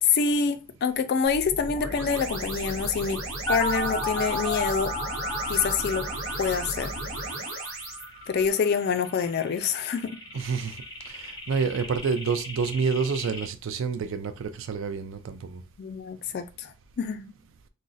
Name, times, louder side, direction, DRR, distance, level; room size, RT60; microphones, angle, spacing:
voice 1, 0.0-3.2 3.5-4.9 5.5-6.1 6.4-6.9 8.3-10.1 15.8-17.3, left 6 dB, 50° left, 0.3 m, -26 dB
sound 1, 1.3-8.1, right 1 dB, 85° right, 0.9 m, -35 dB
sound 2, 3.5-13.5, equal, 20° left, 0.7 m, -34 dB
voice 2, 10.3-10.8 11.1-15.6, right 5 dB, 60° right, 0.4 m, -28 dB
2.4 x 2.0 x 3.9 m
head